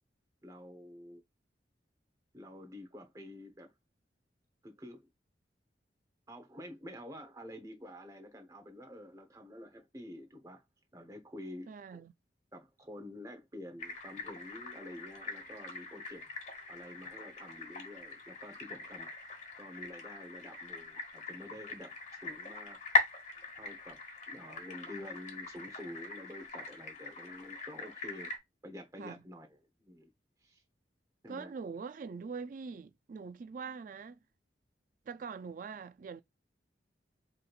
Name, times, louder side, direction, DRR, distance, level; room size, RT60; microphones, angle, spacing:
voice 1, 0.4-1.2 2.3-3.7 4.6-5.1 6.3-10.6 10.9-12.0 12.5-16.3 16.7-19.1 19.6-22.0 22.2-22.8 23.6-24.0 24.3-28.3 28.6-30.1 30.4-30.6 31.2-31.5, left 1 dB, 20° right, 1.0 m, -48 dB
voice 2, 11.7-12.1 29.0-29.2 31.3-34.2 35.1-36.2, right 5 dB, 50° right, 0.3 m, -43 dB
sound 1, 13.8-28.4, left 3 dB, 45° left, 1.2 m, -40 dB
4.9 x 3.2 x 2.4 m
head